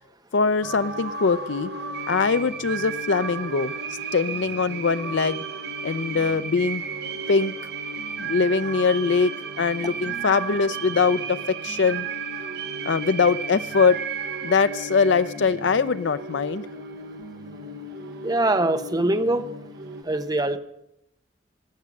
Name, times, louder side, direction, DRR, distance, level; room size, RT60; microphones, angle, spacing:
voice 1, 0.3-1.7 2.1-5.4 5.8-6.8 7.3-7.5 8.2-9.3 9.6-12.1 12.8-14.0 14.4-16.7, left 5 dB, 75° left, 12 dB, 0.5 m, -22 dB
sound 1, 0.6-20.0, right 4 dB, 60° right, 1.2 m, -34 dB
voice 2, 18.2-19.5 20.0-20.6, right 2 dB, 20° right, 10 dB, 0.9 m, -23 dB
17.0 x 6.5 x 9.7 m, 0.80 s
head